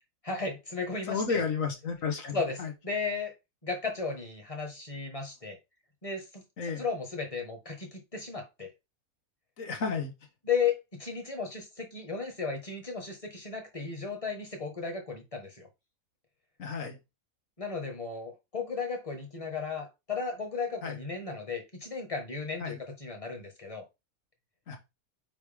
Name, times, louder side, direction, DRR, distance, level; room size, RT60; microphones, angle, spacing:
voice 1, 0.3-1.4 2.3-2.6 2.8-3.3 3.6-5.6 6.0-8.7 10.4-15.7 17.6-23.8, left 5 dB, 25° left, 1.8 m, -35 dB
voice 2, 1.1-2.7 6.6-6.8 9.6-10.1 16.6-17.0 20.8-21.0 22.6-22.8 24.7-24.8, left 5 dB, 65° left, 1.7 m, -32 dB
8.9 x 3.3 x 3.6 m
omnidirectional pair, 1.5 m